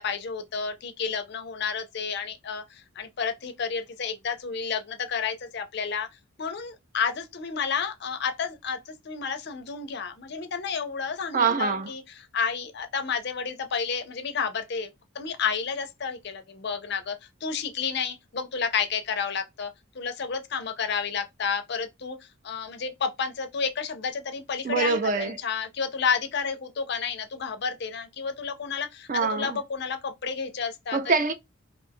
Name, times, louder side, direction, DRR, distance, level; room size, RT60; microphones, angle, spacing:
voice 1, 0.0-6.1 6.4-14.9 15.1-17.2 17.4-22.2 22.4-31.0, left 6 dB, 50° left, 0.5 m, -31 dB
voice 2, 11.3-11.9 24.6-25.4 29.1-29.6 30.9-31.3, right 5 dB, 35° right, 0.3 m, -24 dB
2.5 x 2.2 x 3.4 m
head